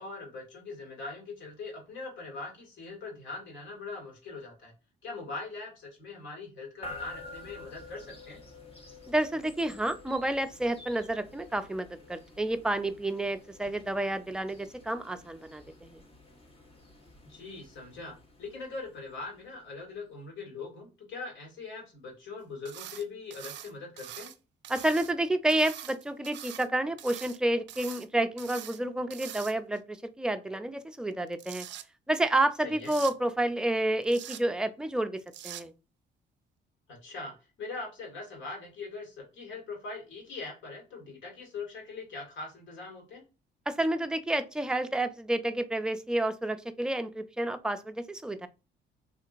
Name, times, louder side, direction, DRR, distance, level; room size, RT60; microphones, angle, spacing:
voice 1, 0.0-4.7 5.0-8.4 17.3-24.3 32.6-32.9 36.9-37.3 37.6-43.2, left 3 dB, 70° left, 0 dB, 2.0 m, -41 dB
sound 1, 6.8-19.8, left 2 dB, 30° left, 1.2 m, -49 dB
voice 2, 9.1-16.0 24.7-31.7 32.1-35.7 43.7-48.5, right 1 dB, 5° right, 9 dB, 0.4 m, -30 dB
sound 2, 22.6-23.0 23.3-24.4 24.6-25.1 25.5-26.7 27.0-27.4 27.7-28.1 28.4-28.8 29.1-29.8 31.1-31.8 32.8-33.1 34.0-34.4 35.3-35.6, right 11 dB, 65° right, 0.4 m, -43 dB
3.7 x 2.8 x 2.4 m, 0.30 s
cardioid pair, 90°, 20 cm